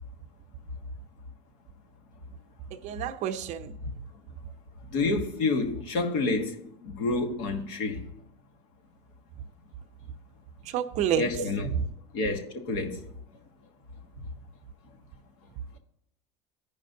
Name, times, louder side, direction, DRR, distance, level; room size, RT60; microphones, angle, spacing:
voice 1, 2.7-3.8 10.7-11.3 11.7-11.9, right 9 dB, 50° right, 0.7 m, -29 dB
voice 2, 4.9-8.1 11.1-11.7 12.1-13.0, left 3 dB, 65° left, 1.5 m, -29 dB
15.0 x 5.2 x 2.7 m
supercardioid pair, 115°, 16 cm